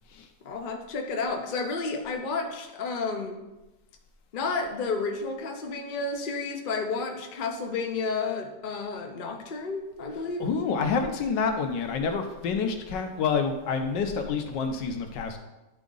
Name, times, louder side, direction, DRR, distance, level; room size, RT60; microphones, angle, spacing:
voice 1, 0.4-3.4 4.3-10.4, left 4 dB, 55° left, 3 dB, 0.5 m, -31 dB
voice 2, 10.4-15.4, left 5 dB, 80° left, 5 dB, 1.4 m, -28 dB
10.5 x 3.6 x 3.9 m, 1.0 s
omnidirectional pair, 1.9 m